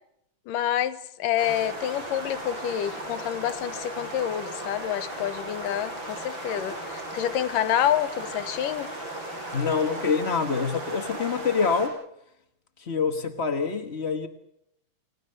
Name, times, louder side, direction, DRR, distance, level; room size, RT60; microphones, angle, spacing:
voice 1, 0.5-8.9, left 11 dB, 85° left, 14 dB, 2.9 m, -28 dB
sound 1, 1.4-11.9, right 1 dB, 35° right, 6.4 m, -36 dB
voice 2, 9.5-12.0 12.8-14.3, left 5 dB, 50° left, 7 dB, 0.7 m, -26 dB
30.0 x 19.5 x 6.8 m, 0.77 s
omnidirectional pair, 3.8 m